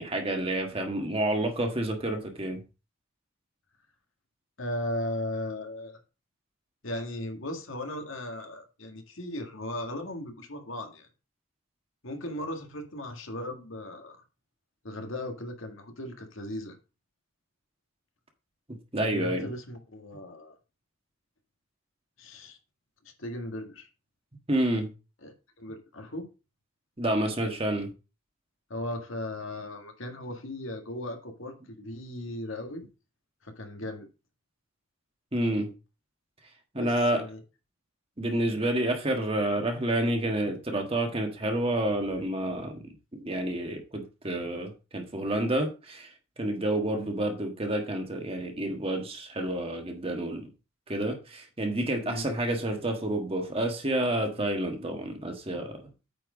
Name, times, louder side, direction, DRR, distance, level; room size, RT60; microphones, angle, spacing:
voice 1, 0.0-2.6 18.9-19.5 24.5-24.9 27.0-27.9 35.3-35.7 36.7-37.2 38.2-42.8 43.1-46.1 46.4-50.5 50.9-55.8, right 1 dB, 25° right, 1.5 m, -29 dB
voice 2, 4.6-6.0 6.8-11.1 12.0-14.2 14.8-16.8 19.0-20.6 22.2-22.6 23.2-23.9 25.2-26.3 28.7-32.8 33.4-34.1 36.8-37.4 52.0-52.3, left 1 dB, 75° left, 1.7 m, -37 dB
8.9 x 4.5 x 4.9 m
head